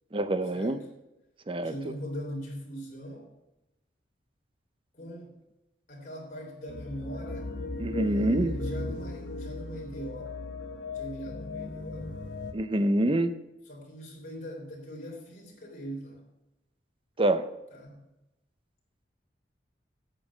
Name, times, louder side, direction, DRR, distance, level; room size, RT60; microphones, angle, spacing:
voice 1, 0.1-0.8 1.5-1.7 7.8-8.6 12.5-13.4 17.2-17.5, right 1 dB, 30° right, 11 dB, 0.6 m, -26 dB
voice 2, 1.6-3.3 4.9-5.3 5.9-7.5 8.1-10.4 10.9-12.1 13.7-16.3 17.7-18.1, equal, 45° left, -2 dB, 3.5 m, -41 dB
sound 1, 6.7-12.5, left 2 dB, 80° left, 1.2 m, -36 dB
8.6 x 7.7 x 6.1 m, 0.96 s
head